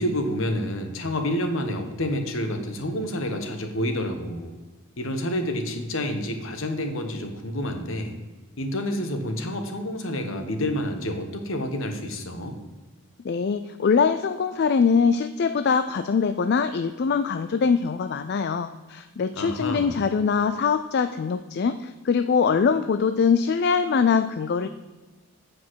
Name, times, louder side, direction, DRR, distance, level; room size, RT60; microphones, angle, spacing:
voice 1, 0.0-4.5 5.0-8.1 8.6-12.6 19.3-20.0, left 1 dB, 65° left, 6 dB, 1.2 m, -28 dB
voice 2, 13.2-24.7, left 5 dB, 50° left, 10 dB, 0.3 m, -23 dB
8.2 x 5.1 x 6.3 m, 1.3 s
head